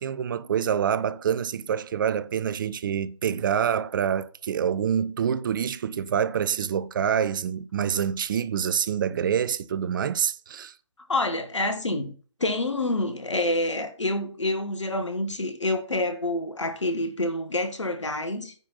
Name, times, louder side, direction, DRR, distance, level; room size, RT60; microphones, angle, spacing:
voice 1, 0.0-10.7, right 8 dB, 45° right, 0.6 m, -26 dB
voice 2, 11.1-12.1 12.4-18.5, left 2 dB, 80° left, 1.7 m, -27 dB
9.2 x 4.3 x 5.6 m
figure-of-eight pair, 130°, 15 cm